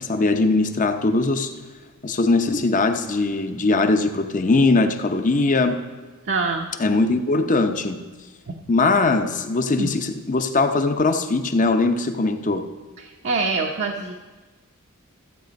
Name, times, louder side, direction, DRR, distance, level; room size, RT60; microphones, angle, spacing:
voice 1, 0.0-1.5 2.0-5.8 6.8-8.0 8.7-12.7, left 3 dB, 35° left, 8 dB, 0.7 m, -20 dB
voice 2, 6.2-6.7 8.5-8.6 9.2-9.3 9.8-9.9 13.0-14.1, right 3 dB, 55° right, 1 dB, 0.7 m, -25 dB
14.5 x 8.2 x 5.2 m, 1.3 s
head